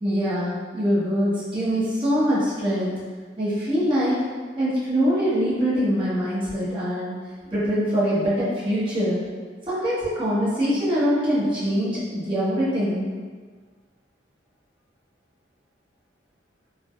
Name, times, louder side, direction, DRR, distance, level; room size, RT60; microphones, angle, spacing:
voice 1, 0.0-2.9 3.4-4.2 4.6-7.1 7.5-9.2 9.7-13.1, equal, 25° right, -11 dB, 1.0 m, -23 dB
3.3 x 2.1 x 2.3 m, 1.5 s
head